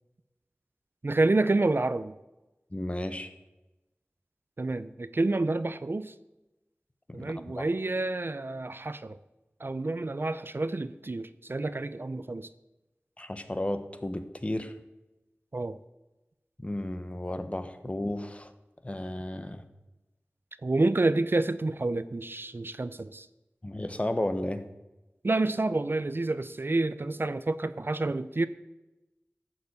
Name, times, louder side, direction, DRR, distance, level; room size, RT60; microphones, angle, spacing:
voice 1, 1.0-2.1 4.6-6.1 7.1-9.2 9.6-12.5 15.5-15.8 20.6-23.3 25.2-28.5, right 2 dB, 50° right, 13 dB, 0.5 m, -28 dB
voice 2, 2.7-3.3 7.1-7.6 13.2-14.8 16.6-18.5 18.8-19.6 23.6-24.7, left 1 dB, 25° left, 9 dB, 1.1 m, -33 dB
12.0 x 7.1 x 8.1 m, 1.0 s
wide cardioid pair, 55°, 5 cm